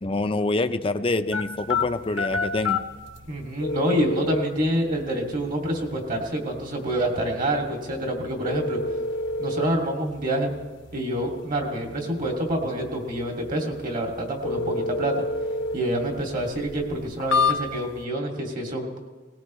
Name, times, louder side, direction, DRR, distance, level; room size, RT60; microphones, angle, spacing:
voice 1, 0.0-2.8, left 2 dB, 30° left, 10 dB, 0.6 m, -26 dB
sound 1, 1.3-18.0, left 3 dB, 90° left, 1.1 m, -31 dB
voice 2, 3.3-8.8 9.4-10.5 10.9-15.2 15.7-19.1, right 1 dB, 45° right, 0 dB, 2.5 m, -27 dB
19.0 x 19.0 x 3.2 m, 1.3 s
head